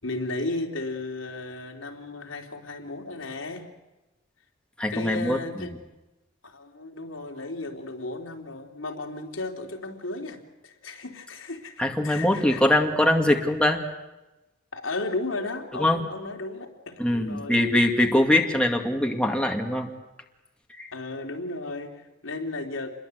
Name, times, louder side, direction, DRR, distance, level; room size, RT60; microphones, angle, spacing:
voice 1, 0.0-3.7 4.9-5.7 6.4-12.7 14.7-17.7 20.9-23.0, left 2 dB, 90° left, 2 dB, 3.5 m, -34 dB
voice 2, 4.8-5.7 11.8-13.8 15.8-16.0 17.0-19.9 20.7-20.9, left 1 dB, 5° left, 2 dB, 2.3 m, -22 dB
28.5 x 22.0 x 8.1 m, 1.0 s
head